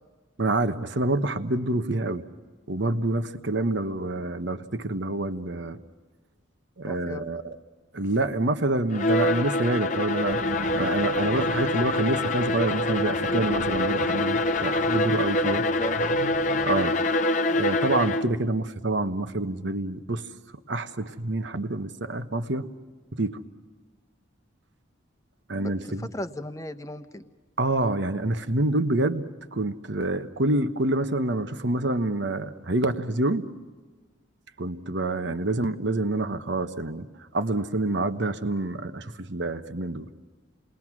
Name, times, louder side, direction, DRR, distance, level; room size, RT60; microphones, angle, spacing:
voice 1, 0.4-2.2 2.7-5.8 6.8-7.6 7.9-15.7 16.6-17.0 17.5-20.2 20.7-22.7 23.1-23.4 25.5-26.1 27.6-29.2 29.5-33.5 34.6-37.1 37.3-40.1, right 2 dB, 60° right, 9 dB, 1.2 m, -27 dB
voice 2, 6.8-7.2 15.6-16.1 25.6-27.2, left 1 dB, 15° left, 7 dB, 1.0 m, -36 dB
Bowed string instrument, 8.9-18.4, left 2 dB, 40° left, 0.8 m, -25 dB
sound 1, 10.3-16.9, right 2 dB, 85° right, 1.0 m, -40 dB
29.5 x 20.5 x 6.1 m, 1.4 s
head